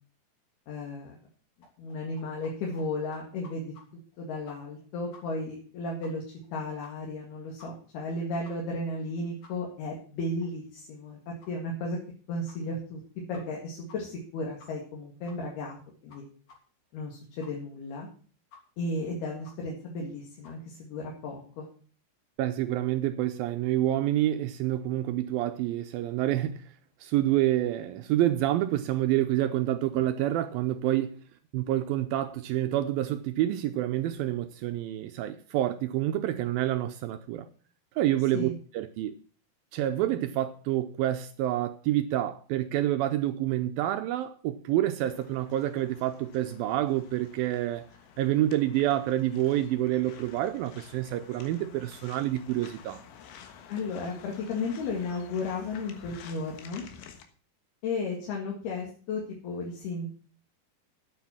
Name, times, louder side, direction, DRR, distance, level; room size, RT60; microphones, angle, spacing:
voice 1, 0.7-1.2 1.8-3.7 4.2-6.2 6.5-11.2 11.5-12.0 12.3-13.0 13.3-15.8 16.0-16.3 16.9-18.1 18.8-21.7 38.3-38.5 53.7-56.9 57.8-60.1, left 2 dB, 70° left, 4.0 m, -34 dB
sound 1, 1.6-2.5 2.8-2.9 3.1-3.8 4.1-4.2 4.5-4.8 5.1-5.2 5.5-5.6 6.0-6.1 6.4-6.5 6.8-7.2 7.6-7.7 8.0-8.1 8.4-8.5 8.9-9.0 9.4-9.5 9.9-10.0 10.4-10.5 10.9-11.0 11.4-11.5 12.0-12.1 12.5-12.6 13.0-13.1 13.3-13.6 13.9-14.0 14.2-14.3 14.6-14.9 15.3-15.4 15.7-15.8 16.1-16.2 16.5-16.6 16.9-17.0 17.4-17.5 17.9-18.0 18.5-18.6 18.9-19.0 19.4-19.5 19.9-20.0 20.4-20.6, left 4 dB, 50° left, 4.3 m, -53 dB
voice 2, 22.4-26.6 27.0-31.2 31.5-37.5 38.0-39.2 39.7-47.9 48.2-53.0, right 13 dB, 80° right, 2.1 m, -28 dB
sound 2, 45.0-57.2, left 7 dB, 85° left, 3.6 m, -51 dB
9.3 x 8.5 x 7.2 m
omnidirectional pair, 4.8 m